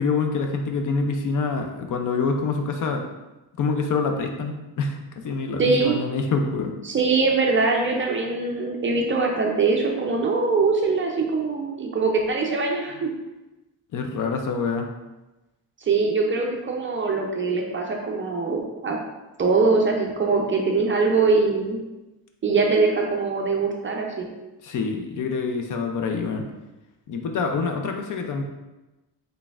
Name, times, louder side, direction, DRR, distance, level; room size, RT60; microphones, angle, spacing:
voice 1, 0.0-3.0 3.6-5.0 5.2-6.7 13.9-14.9 24.6-26.5 27.1-28.4, left 4 dB, 50° left, 4 dB, 0.4 m, -26 dB
voice 2, 5.6-6.0 6.8-13.1 15.8-19.0 19.4-21.8 22.4-24.3, right 4 dB, 30° right, 0 dB, 0.4 m, -22 dB
4.0 x 3.3 x 2.3 m, 1.0 s
cardioid pair, 150°, 41 cm